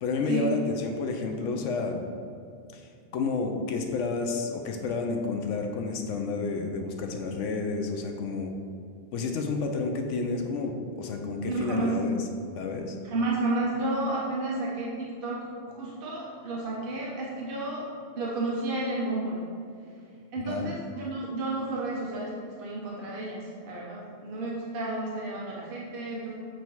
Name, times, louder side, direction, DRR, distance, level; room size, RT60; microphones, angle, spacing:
voice 1, 0.0-2.0 2.7-2.8 3.1-8.5 9.1-12.1 12.6-13.0 20.5-20.6, left 4 dB, 85° left, 3 dB, 1.0 m, -30 dB
voice 2, 11.5-12.0 13.0-15.4 15.8-17.8 18.2-19.4 20.3-26.3, right 2 dB, 50° right, -4 dB, 1.0 m, -31 dB
7.8 x 2.8 x 4.5 m, 2.3 s
omnidirectional pair, 1.2 m